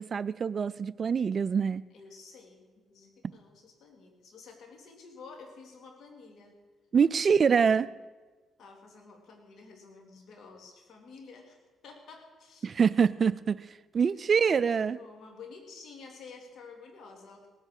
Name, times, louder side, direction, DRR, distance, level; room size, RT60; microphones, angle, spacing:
voice 1, 0.0-1.8 6.9-7.9 12.6-15.0, right 6 dB, 45° right, 17 dB, 0.4 m, -25 dB
voice 2, 1.9-2.6 2.9-6.6 7.1-7.5 8.6-12.7 14.1-17.5, left 4 dB, 65° left, 3 dB, 2.9 m, -51 dB
18.0 x 8.8 x 6.5 m, 1.3 s
cardioid pair, 90°, 0 cm